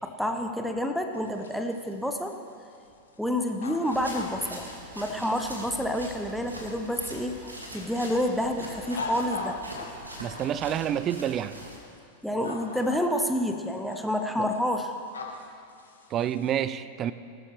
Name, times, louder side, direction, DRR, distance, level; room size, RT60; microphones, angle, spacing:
voice 1, 0.0-2.3 3.2-4.7 4.9-9.6 12.2-14.9, equal, ahead, 4 dB, 0.9 m, -29 dB
sound 1, 1.1-7.1 7.6-10.4 11.5-12.0 12.3-13.4 13.8-16.5, left 4 dB, 70° left, 1.6 m, -40 dB
sound 2, 3.8-11.8, equal, 80° right, 2.0 m, -43 dB
voice 2, 10.2-11.6 14.4-14.5 16.1-17.1, right 10 dB, 30° right, 14 dB, 0.4 m, -28 dB
18.5 x 13.0 x 3.3 m, 2.5 s
figure-of-eight pair, 90°, 0 cm